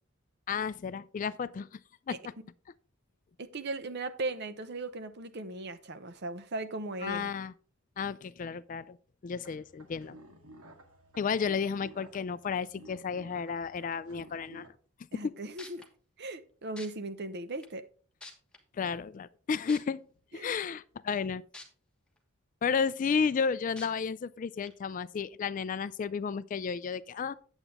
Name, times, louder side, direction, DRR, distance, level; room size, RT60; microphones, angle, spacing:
voice 1, 0.5-1.8 2.1-2.2 7.0-7.5 8.0-9.0 9.2-10.2 11.2-14.7 15.1-15.3 18.8-20.0 20.3-21.4 22.6-27.3, left 6 dB, 35° left, 0.3 m, -32 dB
voice 2, 3.4-7.3 15.1-15.9 16.2-17.8 20.3-20.6, right 2 dB, 50° right, 0.8 m, -38 dB
sound 1, 9.4-14.7, right 1 dB, 90° right, 1.8 m, -54 dB
sound 2, 15.2-15.3 15.6-15.8 16.8-16.9 17.6-17.7 18.2-18.6 19.7-19.8 21.5-21.6 22.2-22.3 23.8-23.9 24.6-24.7, left 2 dB, 5° left, 1.3 m, -46 dB
9.0 x 8.0 x 3.5 m
head